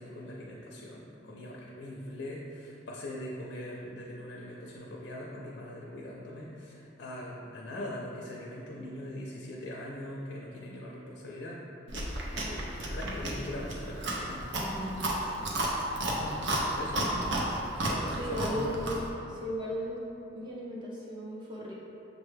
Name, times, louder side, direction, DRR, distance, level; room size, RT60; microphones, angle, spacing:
voice 1, 0.0-11.6 12.5-14.5 14.8-17.4 17.9-18.7, left 1 dB, 65° left, -3 dB, 0.5 m, -42 dB
Chewing mastication, 11.9-19.1, right 1 dB, 70° right, 0.6 m, -32 dB
voice 2, 13.0-13.5 14.6-14.9 18.2-18.9 19.3-20.0 20.3-21.7, equal, 25° right, -5 dB, 0.6 m, -37 dB
6.6 x 2.2 x 3.2 m, 3.0 s
head